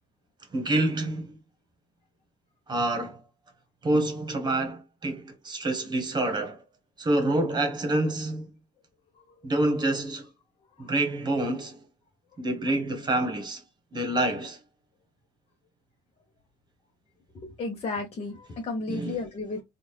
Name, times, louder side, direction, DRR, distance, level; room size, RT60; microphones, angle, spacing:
voice 1, 0.5-1.4 2.7-3.2 3.8-6.6 7.0-8.5 9.4-10.2 10.8-11.8 12.4-13.6 13.9-14.6 18.9-19.2, right 1 dB, 25° right, 1.3 m, -27 dB
voice 2, 17.6-19.6, left 3 dB, 35° left, 1.0 m, -33 dB
3.6 x 2.5 x 3.1 m
cardioid pair, 110°, 17 cm